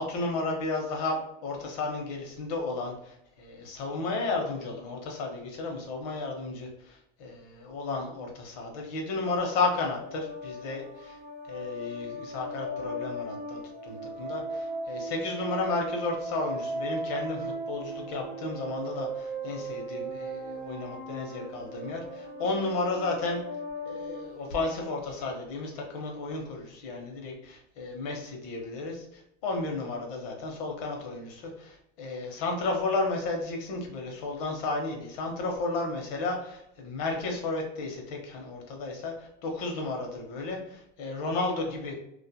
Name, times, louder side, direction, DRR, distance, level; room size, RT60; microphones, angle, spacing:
voice 1, 0.0-11.2 11.5-23.4 23.8-41.9, left 3 dB, 65° left, 1 dB, 0.8 m, -33 dB
sound 1, 9.7-25.2, right 1 dB, 60° right, 0.7 m, -38 dB
2.7 x 2.4 x 2.2 m, 0.79 s
supercardioid pair, 160°, 21 cm